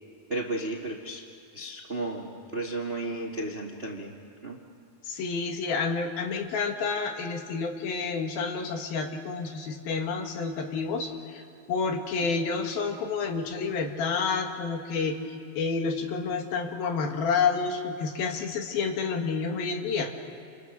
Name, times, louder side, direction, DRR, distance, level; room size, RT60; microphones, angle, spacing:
voice 1, 0.3-1.2 1.5-4.1 4.4-4.6, right 2 dB, 45° right, 1 dB, 0.7 m, -33 dB
voice 2, 5.0-15.2 15.6-20.1, left 5 dB, 80° left, 4 dB, 3.7 m, -29 dB
29.0 x 29.0 x 6.6 m, 2.4 s
omnidirectional pair, 4.2 m